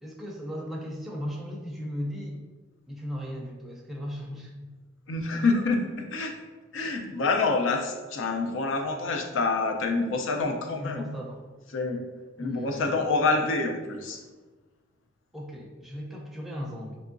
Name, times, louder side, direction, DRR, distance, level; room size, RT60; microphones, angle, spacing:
voice 1, 0.0-2.4 2.9-4.7 10.7-11.4 12.4-13.1 15.3-17.0, equal, ahead, -2 dB, 0.5 m, -37 dB
voice 2, 5.1-6.4 6.7-11.1 11.7-12.0 12.4-14.2, left 3 dB, 85° left, 4 dB, 0.5 m, -27 dB
3.5 x 2.9 x 2.5 m, 1.3 s
head